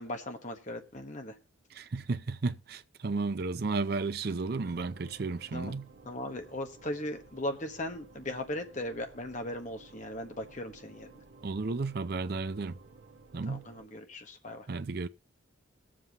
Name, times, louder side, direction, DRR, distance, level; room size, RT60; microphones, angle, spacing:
voice 1, 0.0-1.3 5.5-5.7 6.0-11.1 13.5-14.7, left 1 dB, 40° left, 1.2 m, -38 dB
voice 2, 1.8-5.9 11.4-12.8 13.3-13.6 14.7-15.1, right 3 dB, 50° right, 0.5 m, -33 dB
sound 1, 4.4-13.9, right 3 dB, 70° right, 1.3 m, -55 dB
22.0 x 7.5 x 2.9 m
head